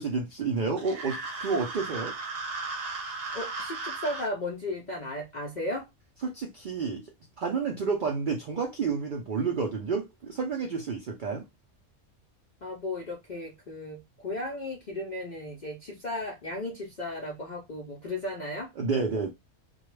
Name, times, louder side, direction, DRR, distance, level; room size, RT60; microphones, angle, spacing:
voice 1, 0.0-2.2 6.2-7.0 7.4-11.5 18.8-19.3, right 4 dB, 70° right, 0.4 m, -30 dB
sound 1, 0.8-4.3, right 3 dB, 50° right, 0.9 m, -36 dB
voice 2, 3.3-5.9 12.6-18.7, left 1 dB, 55° left, 0.5 m, -35 dB
2.3 x 2.1 x 3.1 m
omnidirectional pair, 1.4 m